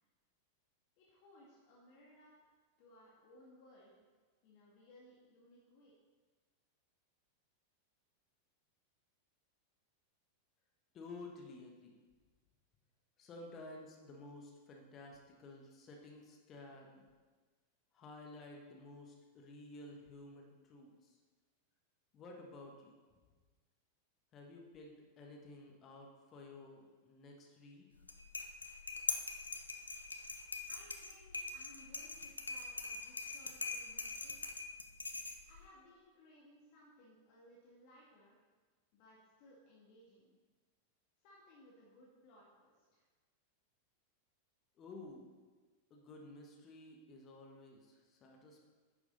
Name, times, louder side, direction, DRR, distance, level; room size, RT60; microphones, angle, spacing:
voice 1, 1.0-2.5 2.8-4.0 4.4-5.9 30.7-34.4 35.5-38.4 38.9-40.4 41.2-43.0, left 1 dB, 45° left, -4 dB, 1.8 m, -62 dB
voice 2, 10.9-11.9 13.2-17.1 17.9-21.2 22.1-23.0 24.3-27.9 44.8-45.3 45.9-48.6, left 2 dB, 30° left, 1 dB, 1.5 m, -53 dB
sound 1, 27.9-35.7, left 3 dB, 80° left, 0.6 m, -43 dB
10.5 x 6.9 x 4.0 m, 1.4 s
figure-of-eight pair, 90°, 0 cm